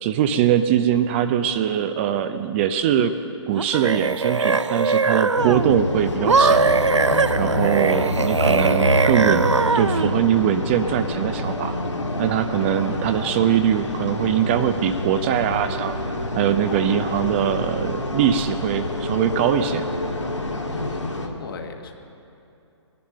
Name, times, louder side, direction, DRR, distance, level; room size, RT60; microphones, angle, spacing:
voice 1, 0.0-3.1 3.5-6.7 7.4-9.5 9.7-11.7 12.2-16.0 16.4-19.8, right 9 dB, 25° right, 9 dB, 0.5 m, -22 dB
sound 1, 3.5-5.8 6.3-10.1, right 4 dB, 85° right, 0.5 m, -20 dB
sound 2, 5.4-21.3, left 1 dB, 80° left, 1.8 m, -27 dB
voice 2, 20.7-21.9, left 3 dB, 50° left, 4 dB, 1.5 m, -36 dB
18.5 x 10.5 x 6.6 m, 2.8 s
figure-of-eight pair, 125°, 15 cm